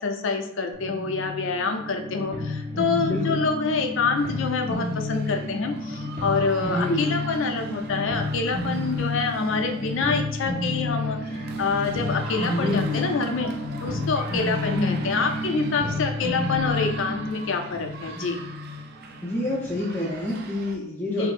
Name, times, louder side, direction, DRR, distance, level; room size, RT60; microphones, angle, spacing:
voice 1, 0.0-13.5 13.8-18.4 21.1-21.3, left 4 dB, 65° left, 5 dB, 0.4 m, -26 dB
sound 1, 0.7-19.8, left 2 dB, 30° right, 0.9 m, -31 dB
voice 2, 3.1-3.4 6.7-7.2 12.5-13.0 14.6-15.1 19.2-21.3, left 1 dB, 10° left, -6 dB, 0.4 m, -28 dB
sound 2, 4.2-20.8, right 4 dB, 50° right, 0.4 m, -43 dB
4.3 x 2.0 x 2.4 m, 0.83 s
head